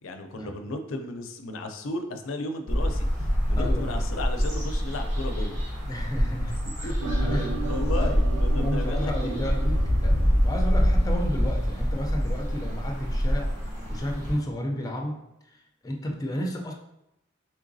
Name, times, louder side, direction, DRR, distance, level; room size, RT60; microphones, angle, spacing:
voice 1, 0.0-5.6 6.6-7.2 7.7-9.5, left 2 dB, 70° left, 6 dB, 0.4 m, -35 dB
sound 1, 2.7-14.4, equal, 35° right, 1.2 m, -25 dB
voice 2, 3.6-4.0 5.9-6.9 7.2-7.7 8.0-8.2 8.5-13.5 13.9-15.2 15.5-15.6 15.8-16.7, equal, 20° left, 1 dB, 0.5 m, -32 dB
sound 2, 7.0-12.2 12.5-13.0, right 4 dB, 85° right, 0.3 m, -38 dB
3.7 x 3.3 x 2.6 m, 0.86 s
head